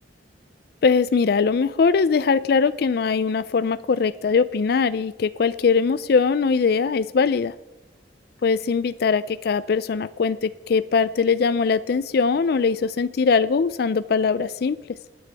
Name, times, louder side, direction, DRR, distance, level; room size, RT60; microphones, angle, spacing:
voice 1, 0.8-7.5 8.4-14.8, left 5 dB, 60° left, 14 dB, 0.4 m, -21 dB
20.0 x 9.6 x 3.4 m, 1.0 s
head